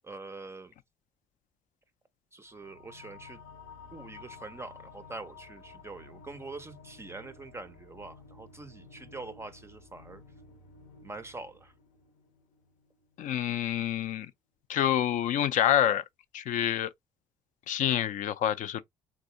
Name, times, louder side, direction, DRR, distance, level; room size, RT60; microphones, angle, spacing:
voice 1, 0.0-0.7 2.3-3.4 3.9-10.2 11.0-11.7, right 3 dB, 15° right, 0.4 m, -44 dB
sound 1, 2.4-13.4, left 4 dB, 85° left, 0.7 m, -53 dB
voice 2, 13.2-14.3 14.7-16.0 16.3-16.9 17.7-18.8, left 11 dB, 60° left, 0.4 m, -27 dB
3.5 x 2.6 x 2.5 m
supercardioid pair, 75°, 15 cm